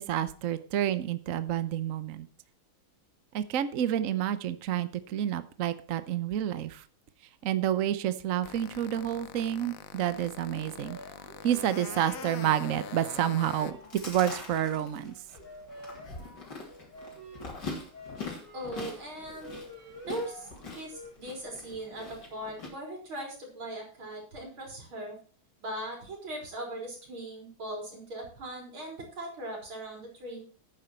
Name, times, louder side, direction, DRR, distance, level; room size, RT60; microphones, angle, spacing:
voice 1, 0.0-2.3 3.3-6.8 7.4-11.0 11.4-15.1, right 11 dB, 60° right, 13 dB, 0.9 m, -29 dB
sound 1, 8.4-13.7, left 9 dB, 70° left, 0.8 m, -44 dB
sound 2, 10.6-21.1, equal, 15° left, 4.8 m, -49 dB
Chewing mastication, 13.6-22.7, left 3 dB, 55° left, 3.6 m, -43 dB
voice 2, 18.5-19.5 20.1-25.2 25.6-30.4, right 1 dB, 75° right, -1 dB, 5.1 m, -39 dB
11.0 x 9.2 x 4.4 m, 0.40 s
omnidirectional pair, 2.3 m